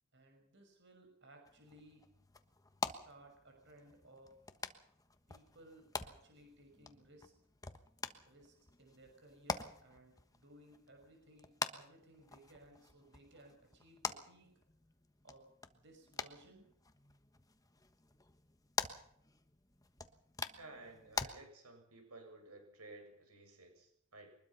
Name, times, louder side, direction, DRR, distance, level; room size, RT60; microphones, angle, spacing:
voice 1, 0.1-2.0 2.9-4.4 5.3-7.3 8.2-14.5 15.2-16.7, right 1 dB, 50° right, 3 dB, 6.3 m, -61 dB
sound 1, 1.4-21.3, left 4 dB, 15° left, 1.3 m, -46 dB
voice 2, 20.6-24.3, right 2 dB, 85° right, 4 dB, 7.6 m, -55 dB
23.5 x 21.0 x 5.8 m, 0.69 s
head